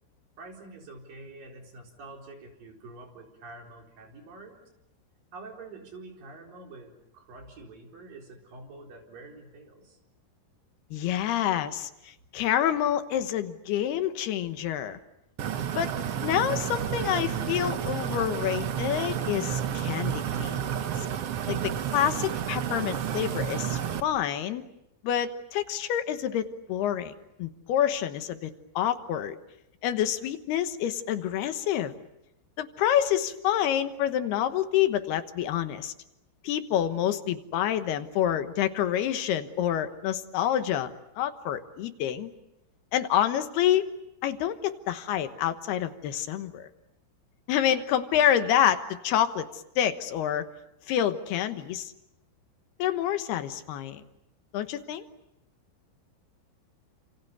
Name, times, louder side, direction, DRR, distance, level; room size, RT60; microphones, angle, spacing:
voice 1, 0.4-4.5 5.3-10.0, right 3 dB, 60° right, 1 dB, 5.9 m, -46 dB
voice 2, 10.9-15.0 15.7-15.9 16.2-20.6 21.5-24.6 25.0-27.1 27.4-29.4 29.8-31.9 32.6-35.9 36.4-40.9 41.2-42.3 42.9-43.9 44.2-46.7 47.5-49.5 49.8-50.5 50.9-51.9 52.8-54.0 54.5-55.0, left 10 dB, 80° left, 9 dB, 3.2 m, -27 dB
sound 1, 15.4-24.0, right 9 dB, 75° right, 1.3 m, -31 dB
30.0 x 27.5 x 6.9 m, 0.87 s
omnidirectional pair, 4.6 m